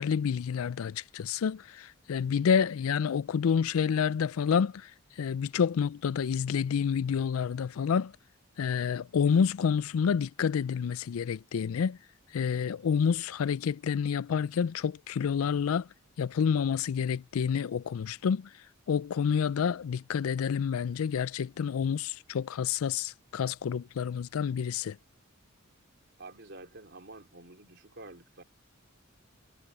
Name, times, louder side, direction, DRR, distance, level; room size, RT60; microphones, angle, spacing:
voice 1, 0.0-4.9 5.2-8.1 8.6-12.0 12.3-15.9 16.2-18.5 18.9-25.0, left 7 dB, 85° left, 0.4 m, -28 dB
voice 2, 26.2-28.4, right 2 dB, 55° right, 4.5 m, -48 dB
head